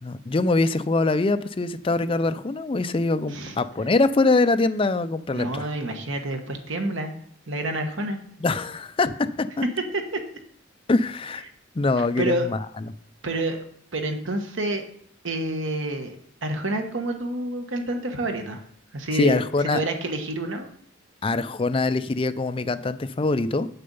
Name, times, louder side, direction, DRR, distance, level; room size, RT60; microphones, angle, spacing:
voice 1, 0.0-5.7 8.4-9.5 10.9-11.4 11.8-12.6 19.1-19.8 21.2-23.7, left 3 dB, 25° left, 11 dB, 0.4 m, -23 dB
voice 2, 5.3-7.1 7.5-8.2 9.9-10.2 12.2-12.5 13.2-13.6 13.9-14.8 15.2-18.6 18.9-20.7, right 1 dB, 65° right, 5 dB, 1.3 m, -28 dB
7.7 x 6.8 x 5.4 m, 0.63 s
head